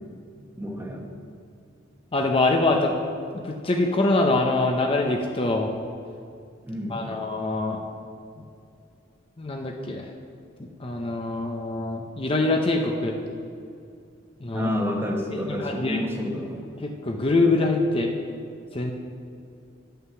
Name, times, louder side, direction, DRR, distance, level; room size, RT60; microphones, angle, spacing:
voice 1, 0.3-1.1 6.7-7.2 14.5-16.6, left 1 dB, 10° right, 1 dB, 1.0 m, -30 dB
voice 2, 2.1-3.0 3.4-5.7 6.9-7.8 8.4-8.5 9.4-10.1 10.6-13.1 14.4-14.7 15.5-16.1 16.8-18.1 18.7-18.9, left 2 dB, 30° left, 2 dB, 0.6 m, -24 dB
9.5 x 5.7 x 6.8 m, 2.4 s
head